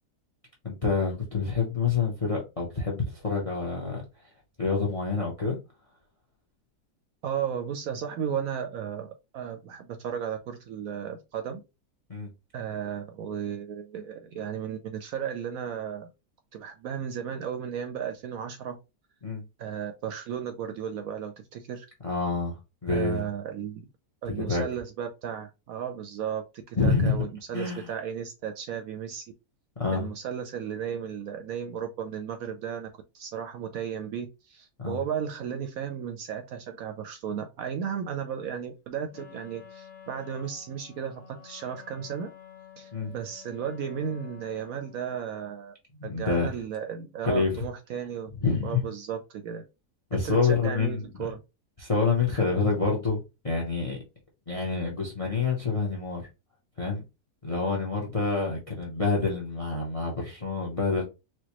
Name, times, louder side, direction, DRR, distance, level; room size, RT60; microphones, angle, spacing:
voice 1, 0.6-4.0 4.6-5.6 12.1-12.3 19.2-19.4 22.0-23.3 24.3-24.6 26.8-27.2 27.5-27.9 29.8-30.1 34.8-35.0 42.9-43.1 46.0-46.6 47.2-47.7 48.4-48.8 50.1-51.3 51.8-54.0 54.5-56.2 56.8-57.0 57.4-61.0, left 4 dB, 35° left, 0.5 m, -27 dB
voice 2, 7.2-11.6 12.5-16.1 16.5-18.8 19.6-21.9 22.9-23.9 24.2-29.3 29.9-32.9 33.1-42.3 42.8-45.7 46.0-48.3 48.6-49.6 50.2-51.4, right 8 dB, 70° right, 0.9 m, -34 dB
Wind instrument woodwind instrument, 39.1-45.2, left 8 dB, 70° left, 1.4 m, -50 dB
4.4 x 2.2 x 2.9 m
omnidirectional pair, 1.8 m